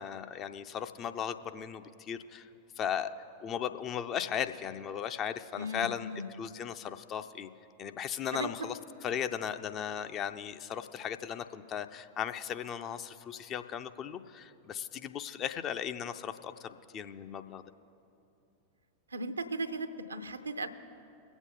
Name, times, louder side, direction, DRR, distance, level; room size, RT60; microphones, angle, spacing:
voice 1, 0.0-2.5 2.8-3.1 3.4-6.1 6.4-7.5 7.8-8.8 9.0-17.6, left 9 dB, 30° left, 9 dB, 0.5 m, -37 dB
voice 2, 5.6-6.4 8.3-8.7 19.1-20.7, right 2 dB, 75° right, 10 dB, 0.6 m, -37 dB
21.5 x 8.1 x 3.8 m, 2.7 s
figure-of-eight pair, 90°, 0 cm